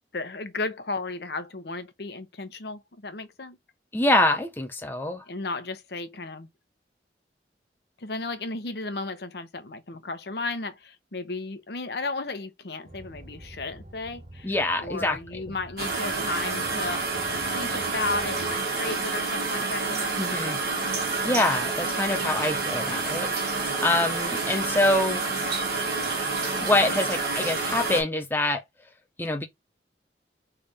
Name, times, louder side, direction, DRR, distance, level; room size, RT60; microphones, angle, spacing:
voice 1, 0.1-3.6 5.3-6.5 8.0-20.2, left 3 dB, 65° left, 0.8 m, -34 dB
voice 2, 3.9-5.2 14.4-15.2 20.2-20.6 21.2-25.2 26.6-28.6 29.2-29.5, left 2 dB, 10° left, 0.4 m, -25 dB
sound 1, 12.8-18.6, right 1 dB, 35° right, 0.9 m, -47 dB
sound 2, 15.8-28.0, right 3 dB, 60° right, 1.5 m, -28 dB
3.4 x 3.4 x 4.0 m
head